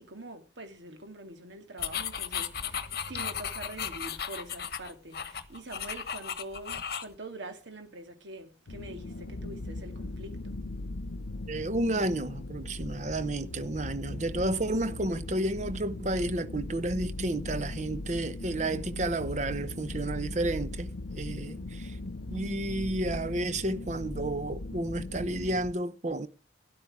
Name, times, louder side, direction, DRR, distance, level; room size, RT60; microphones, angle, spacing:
voice 1, 0.0-10.6, right 2 dB, 80° right, 2.1 m, -45 dB
sound 1, 1.8-7.1, left 8 dB, 55° left, 1.1 m, -35 dB
sound 2, 8.7-25.7, left 2 dB, 90° left, 0.8 m, -39 dB
voice 2, 11.5-22.0 22.3-26.3, right 1 dB, 40° right, 0.8 m, -31 dB
12.5 x 11.0 x 4.8 m
head